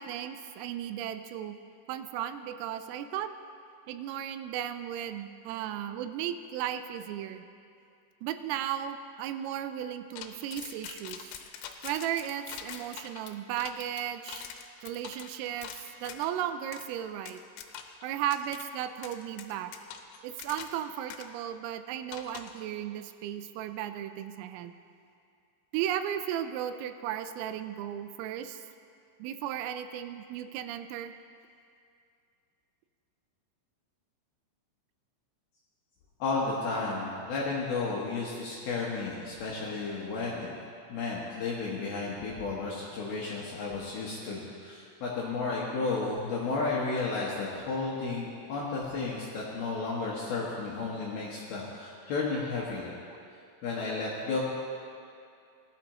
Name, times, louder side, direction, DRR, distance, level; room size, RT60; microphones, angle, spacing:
voice 1, 0.0-1.6 1.9-3.3 3.9-7.4 8.2-11.3 11.8-14.5 14.8-17.4 18.0-19.7 20.2-24.7 25.7-28.6 29.2-31.1 49.3-49.4, right 10 dB, 85° right, 9 dB, 3.1 m, -35 dB
sound 1, 10.2-16.3 16.7-16.9 17.3-18.0 18.3-18.6 19.0-20.8 21.1-21.3 22.1-22.6, left 9 dB, 90° left, 3.5 m, -44 dB
voice 2, 36.2-40.5 40.9-52.9 53.6-54.4, left 3 dB, 70° left, -5 dB, 2.4 m, -33 dB
19.0 x 11.5 x 3.0 m, 2.4 s
omnidirectional pair, 5.9 m